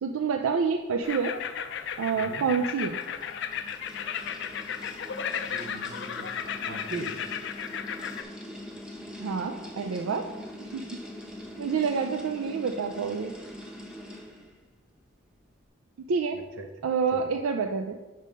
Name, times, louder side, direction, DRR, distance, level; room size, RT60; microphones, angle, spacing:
voice 1, 0.0-1.4 2.0-3.0 9.2-10.3 10.7-11.0 11.6-13.3 16.1-16.4 16.8-18.0, right 5 dB, 90° right, 6 dB, 0.4 m, -28 dB
sound 1, 1.0-8.2, left 7 dB, 55° left, 0.4 m, -35 dB
sound 2, 2.6-14.6, left 1 dB, 5° right, 0.8 m, -43 dB
voice 2, 5.5-6.3 6.7-7.1 16.3-16.7 17.1-17.3, right 3 dB, 70° right, 6 dB, 0.8 m, -40 dB
5.4 x 5.4 x 5.2 m, 1.2 s
head